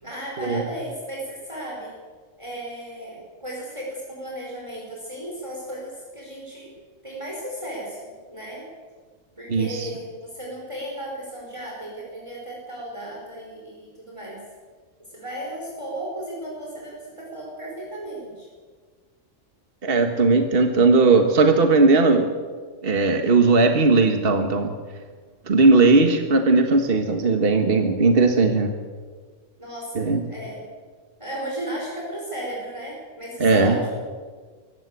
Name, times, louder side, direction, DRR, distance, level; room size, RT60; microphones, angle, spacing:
voice 1, 0.0-1.9 2.4-6.7 7.0-8.7 9.4-14.4 15.1-18.5 25.8-26.1 29.6-30.6 31.2-34.1, right 1 dB, 25° right, -3 dB, 5.2 m, -35 dB
voice 2, 9.5-9.9 19.8-22.3 22.8-24.7 25.5-28.7 30.0-30.2 33.4-33.8, right 3 dB, 50° right, 6 dB, 1.7 m, -18 dB
24.0 x 14.5 x 8.4 m, 1.5 s
omnidirectional pair, 1.3 m